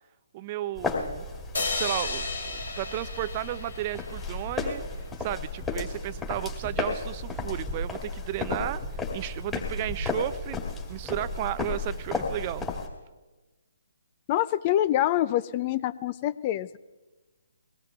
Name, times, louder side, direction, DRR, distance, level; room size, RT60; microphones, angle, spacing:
voice 1, 0.3-1.2 1.5-2.3 2.8-4.8 5.2-12.7, right 14 dB, 30° right, 16 dB, 0.4 m, -34 dB
sound 1, 0.8-12.9, left 3 dB, 10° left, 2.2 m, -33 dB
sound 2, 1.5-4.9, left 3 dB, 70° left, 1.4 m, -34 dB
voice 2, 14.3-16.8, left 13 dB, 30° left, 18 dB, 0.4 m, -26 dB
23.0 x 18.0 x 2.4 m, 1.2 s
figure-of-eight pair, 140°, 0 cm